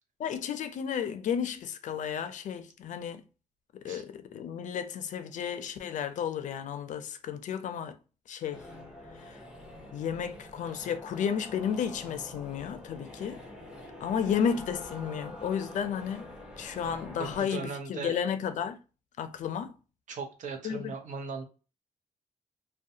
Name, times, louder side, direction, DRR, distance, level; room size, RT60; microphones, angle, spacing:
voice 1, 0.2-3.2 3.7-8.0 8.3-8.7 9.2-9.4 9.9-13.4 14.0-16.3 16.6-18.8 19.2-19.8 20.6-20.9, left 8 dB, 70° left, 0.4 m, -33 dB
sound 1, 8.5-17.4, left 1 dB, 5° right, 0.6 m, -46 dB
voice 2, 17.2-18.2 20.1-21.4, right 5 dB, 75° right, 0.7 m, -38 dB
2.4 x 2.2 x 2.7 m
wide cardioid pair, 130°, 13 cm